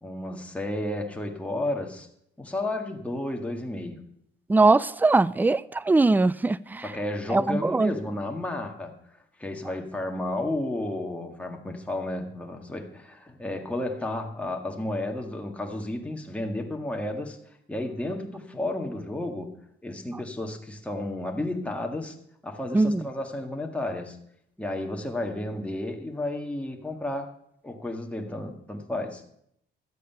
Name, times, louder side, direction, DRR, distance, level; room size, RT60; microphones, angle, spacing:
voice 1, 0.0-2.1 2.4-4.0 6.8-8.9 9.4-17.4 17.7-19.5 19.8-22.2 22.4-24.2 24.6-27.3 27.6-29.2, left 1 dB, 5° left, 1.7 m, -32 dB
voice 2, 4.5-6.9 7.3-7.9 22.7-23.1, right 3 dB, 10° right, 0.3 m, -21 dB
12.5 x 8.3 x 5.7 m
cardioid pair, 90°, 20 cm